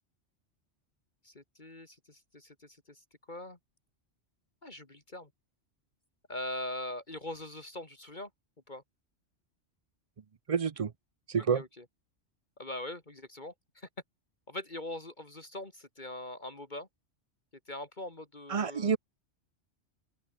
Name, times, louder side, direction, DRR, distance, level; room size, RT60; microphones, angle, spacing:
voice 1, 1.2-3.6 4.6-5.3 6.3-8.3 8.7-8.8 11.5-11.9 12.6-13.9 14.5-16.9 17.7-19.0, left 1 dB, 40° left, 2.6 m, -42 dB
voice 2, 10.5-10.9 11.3-11.6 18.5-19.0, right 6 dB, 40° right, 0.6 m, -28 dB
open air
omnidirectional pair, 1.2 m